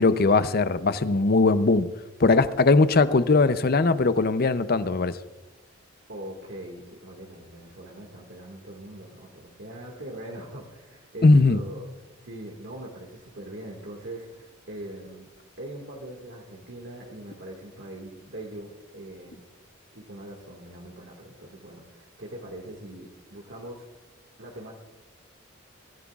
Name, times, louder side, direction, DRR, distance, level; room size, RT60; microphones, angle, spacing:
voice 1, 0.0-1.9 2.2-5.2 11.2-11.6, left 3 dB, 50° left, 13 dB, 0.6 m, -20 dB
voice 2, 6.1-11.9 12.2-15.3 15.6-19.4 19.9-23.8 24.4-24.7, right 1 dB, 65° right, -1 dB, 1.9 m, -41 dB
23.5 x 15.0 x 2.4 m, 1.1 s
head